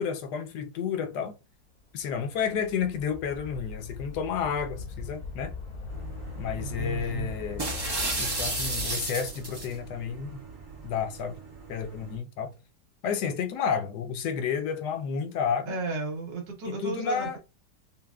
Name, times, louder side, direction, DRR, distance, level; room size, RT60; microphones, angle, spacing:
voice 1, 0.0-1.3 1.9-5.5 6.4-7.7 8.2-10.4 10.8-11.4 11.7-12.5 13.0-15.8 16.7-17.4, left 7 dB, 70° left, 1.2 m, -31 dB
sound 1, 1.8-9.1, left 4 dB, 90° left, 2.3 m, -40 dB
sound 2, 5.9-12.2, right 5 dB, 55° right, 1.6 m, -47 dB
voice 2, 6.6-7.3 15.7-17.4, right 3 dB, 80° right, 1.7 m, -34 dB
sound 3, 7.6-9.7, right 2 dB, 35° right, 0.3 m, -31 dB
5.5 x 2.1 x 2.4 m
omnidirectional pair, 1.9 m